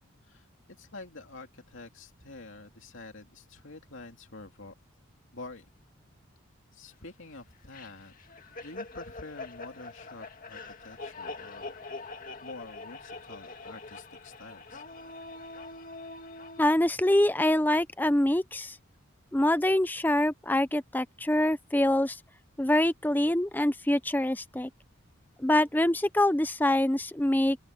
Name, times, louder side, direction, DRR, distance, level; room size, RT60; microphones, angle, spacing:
voice 1, 0.8-4.7 5.3-5.7 6.7-8.1 8.6-14.8, left 2 dB, 65° left, 2.6 m, -47 dB
sound 1, 7.7-16.6, left 3 dB, 40° left, 2.1 m, -44 dB
voice 2, 16.6-18.7 19.3-22.2 22.6-24.7 25.4-27.6, left 1 dB, 10° left, 0.6 m, -25 dB
open air
head